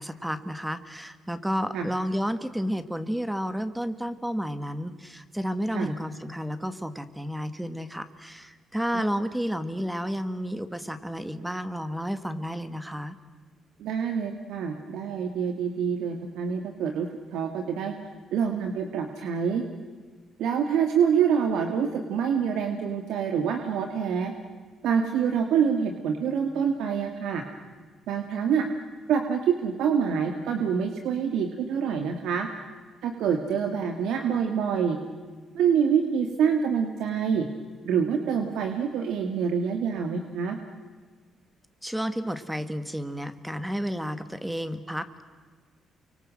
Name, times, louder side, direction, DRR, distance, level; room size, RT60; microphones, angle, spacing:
voice 1, 0.0-13.2 41.8-45.2, equal, 5° right, 11 dB, 1.9 m, -31 dB
voice 2, 13.8-17.9 18.3-19.6 20.4-24.3 24.8-27.4 28.1-28.7 29.1-32.5 33.0-35.0 35.5-37.5 37.8-40.6, right 7 dB, 85° right, 5 dB, 2.2 m, -26 dB
29.0 x 24.5 x 7.8 m, 1.5 s
cardioid pair, 90°, 0 cm